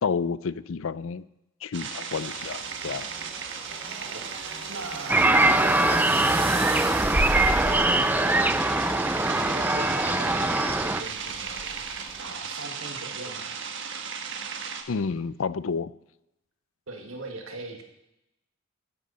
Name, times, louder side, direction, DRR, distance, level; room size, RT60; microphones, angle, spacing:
voice 1, 0.0-1.2 1.6-3.1 14.9-15.9, left 5 dB, 70° left, 17 dB, 0.5 m, -30 dB
sound 1, 1.7-14.8, right 6 dB, 60° right, 1.3 m, -36 dB
sound 2, 2.1-12.3, right 1 dB, 30° right, 2.0 m, -36 dB
voice 2, 3.9-11.8 12.2-13.6 16.9-17.8, right 2 dB, 85° right, 3 dB, 2.1 m, -41 dB
sound 3, 5.1-11.0, right 2 dB, 10° right, 0.5 m, -22 dB
13.0 x 10.5 x 4.2 m, 0.88 s
head